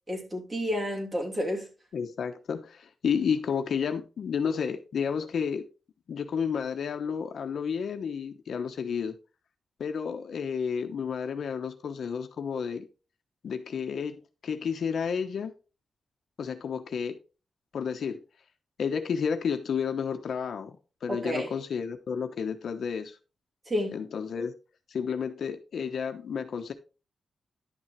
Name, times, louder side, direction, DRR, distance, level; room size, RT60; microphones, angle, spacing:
voice 1, 0.1-1.7 21.1-21.5 23.7-24.0, equal, 30° right, 3.1 m, -30 dB
voice 2, 1.9-5.6 6.1-9.2 9.8-12.9 13.4-15.5 16.4-17.2 17.7-18.2 18.8-23.1 23.9-24.5 24.9-26.7, left 6 dB, 75° left, 1.0 m, -31 dB
11.5 x 6.3 x 3.2 m
cardioid pair, 95°, 0 cm